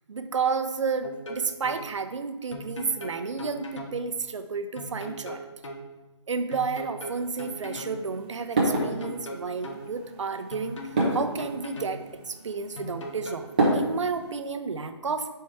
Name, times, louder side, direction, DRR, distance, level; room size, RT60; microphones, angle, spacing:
voice 1, 0.1-5.4 6.3-10.8 11.1-12.0 12.3-13.5 13.7-15.3, right 5 dB, 85° right, 9 dB, 0.6 m, -31 dB
sound 1, 1.0-1.8 2.5-4.0 4.8-5.8 6.5-8.0 8.8-9.8 10.5-12.0 12.8-13.8, equal, 85° left, 1.0 m, -39 dB
sound 2, 7.0-14.3, right 2 dB, 15° right, 0.6 m, -31 dB
4.6 x 4.3 x 4.8 m, 1.1 s
hypercardioid pair, 180°, 15 cm